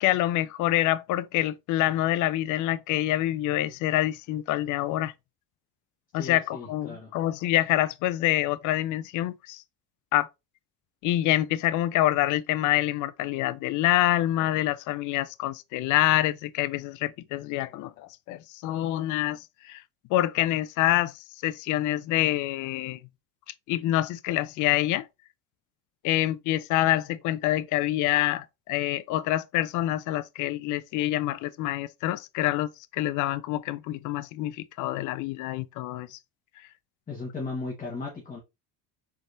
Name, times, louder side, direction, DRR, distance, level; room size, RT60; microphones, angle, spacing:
voice 1, 0.0-5.1 6.1-9.6 10.1-10.3 11.0-19.8 20.1-23.0 23.7-25.1 26.0-36.2, left 14 dB, 50° left, 0.4 m, -26 dB
voice 2, 6.1-7.1 37.1-38.4, left 3 dB, 20° left, 1.2 m, -36 dB
4.1 x 3.4 x 2.5 m
cardioid pair, 120°, 38 cm